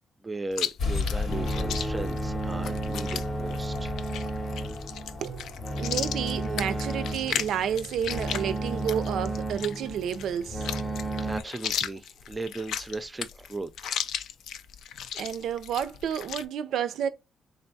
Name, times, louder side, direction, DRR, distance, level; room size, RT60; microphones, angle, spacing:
voice 1, 0.2-4.0 11.2-14.0, right 2 dB, 20° right, 0.4 m, -37 dB
Chewing mastication, 0.5-16.5, left 9 dB, 80° left, 0.4 m, -36 dB
sound 1, 0.8-7.9, left 4 dB, 60° left, 0.8 m, -36 dB
sound 2, 1.3-11.4, right 1 dB, 20° left, 0.6 m, -33 dB
voice 2, 5.2-10.6 15.1-17.1, right 9 dB, 80° right, 0.4 m, -30 dB
3.8 x 3.4 x 2.7 m
cardioid pair, 120°, 0 cm